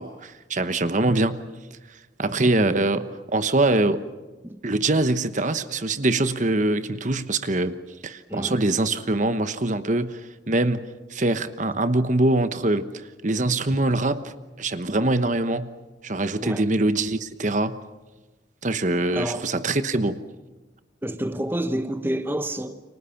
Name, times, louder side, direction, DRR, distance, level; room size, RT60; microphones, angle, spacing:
voice 1, 0.0-1.4 1.9-4.1 4.6-7.8 8.0-15.7 16.0-17.8 18.6-20.2, right 2 dB, 40° right, 1.1 m, -24 dB
voice 2, 19.1-19.4 21.0-22.8, right 1 dB, 10° right, 1.0 m, -29 dB
29.5 x 25.5 x 5.9 m
head